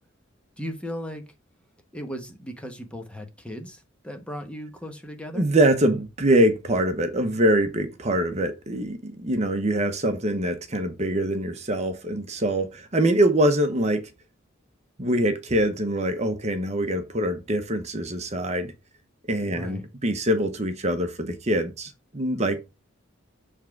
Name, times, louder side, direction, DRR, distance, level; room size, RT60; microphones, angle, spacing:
voice 1, 0.6-1.2 1.9-5.5 19.5-19.9, equal, 5° left, 1.1 m, -36 dB
voice 2, 5.3-14.1 15.0-18.7 19.3-22.6, right 1 dB, 35° right, 0.9 m, -24 dB
7.3 x 3.6 x 5.9 m
head